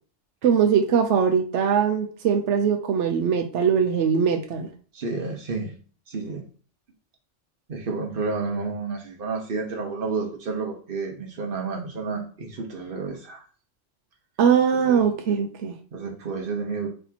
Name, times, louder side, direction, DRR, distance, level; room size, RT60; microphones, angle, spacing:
voice 1, 0.4-4.7 14.4-15.7, right 7 dB, 85° right, 4 dB, 0.9 m, -21 dB
voice 2, 4.9-5.7 6.1-6.4 7.7-13.4 14.8-15.1 15.9-16.9, right 4 dB, 50° right, 1 dB, 1.1 m, -30 dB
4.1 x 3.4 x 2.8 m, 0.42 s
omnidirectional pair, 1.2 m